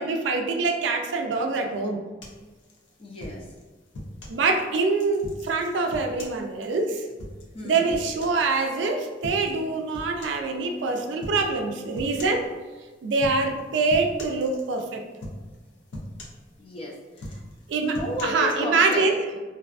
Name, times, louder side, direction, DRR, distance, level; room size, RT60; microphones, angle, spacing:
voice 1, 0.0-2.0 4.3-7.1 7.6-12.5 13.0-15.0 17.7-19.1, right 3 dB, 80° right, 3 dB, 0.3 m, -25 dB
sound 1, 2.2-4.4 4.9-8.8 9.2-9.6 9.9-10.5 11.2-11.4 11.9-12.5 13.1-13.6 13.9-14.9 15.2-15.6 15.9-16.8 17.1-18.2, left 1 dB, 85° left, 0.5 m, -40 dB
voice 2, 3.0-3.5 7.5-7.9 16.6-17.4 17.8-19.1 19.3-19.4, left 1 dB, 30° left, -2 dB, 0.4 m, -33 dB
2.6 x 2.2 x 2.3 m, 1.3 s
head